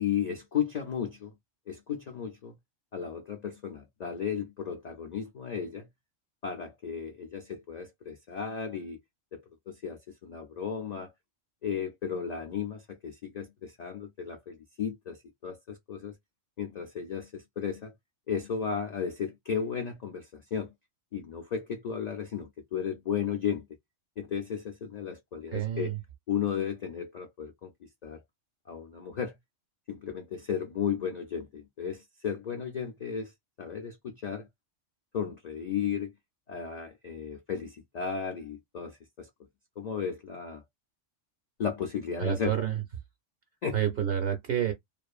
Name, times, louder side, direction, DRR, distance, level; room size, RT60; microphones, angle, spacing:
voice 1, 0.0-1.3 1.7-2.6 2.9-5.9 6.4-9.0 9.3-11.1 11.6-16.1 16.6-17.9 18.3-20.7 21.1-23.6 24.2-25.9 26.3-28.2 28.7-29.4 29.9-33.3 33.6-34.5 35.1-36.1 36.5-39.3 39.8-40.6 41.6-42.5 43.6-43.8, left 7 dB, 55° left, 0.4 m, -34 dB
voice 2, 25.5-26.0 42.2-42.8 43.7-44.7, right 10 dB, 60° right, 0.7 m, -29 dB
2.5 x 2.5 x 2.3 m
omnidirectional pair, 1.3 m